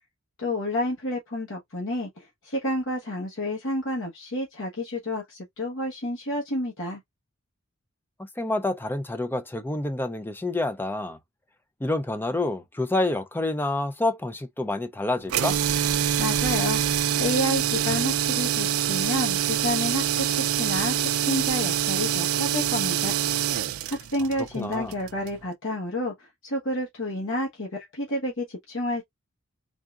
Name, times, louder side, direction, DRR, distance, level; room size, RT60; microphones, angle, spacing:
voice 1, 0.4-7.0 16.2-16.8 17.2-23.2 23.9-29.0, left 1 dB, 60° left, 1.2 m, -30 dB
voice 2, 8.4-11.2 11.8-15.6 24.5-24.9, left 2 dB, 10° left, 0.4 m, -28 dB
sound 1, 15.3-25.4, right 10 dB, 70° right, 0.4 m, -25 dB
3.7 x 3.5 x 2.4 m
head